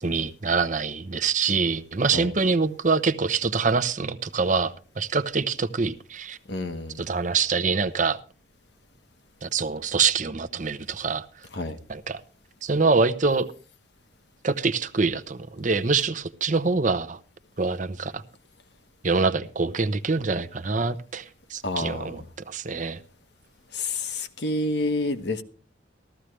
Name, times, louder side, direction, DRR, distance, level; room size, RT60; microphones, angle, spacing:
voice 1, 0.0-6.4 7.0-8.2 9.4-11.3 11.9-12.2 12.6-13.5 14.4-17.2 17.6-18.2 19.0-21.2 21.5-23.0, right 4 dB, 40° right, 0.7 m, -25 dB
voice 2, 6.5-7.1 11.5-11.8 21.6-22.2 23.7-25.4, left 2 dB, 60° left, 1.2 m, -29 dB
15.0 x 13.5 x 3.3 m
head